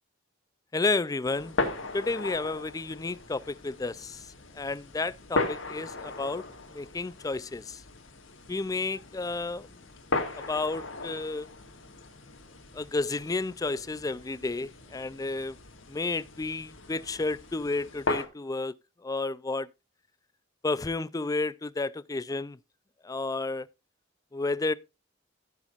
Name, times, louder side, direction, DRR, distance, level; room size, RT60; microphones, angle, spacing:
voice 1, 0.7-1.5 1.9-6.4 6.7-7.8 8.5-9.7 10.5-11.5 12.7-15.6 15.9-18.7 19.0-19.7 20.6-22.6 23.0-23.7 24.3-24.7, left 3 dB, 20° left, 0.4 m, -31 dB
sound 1, 1.2-18.3, left 3 dB, 70° left, 1.8 m, -37 dB
15.0 x 7.2 x 2.5 m
head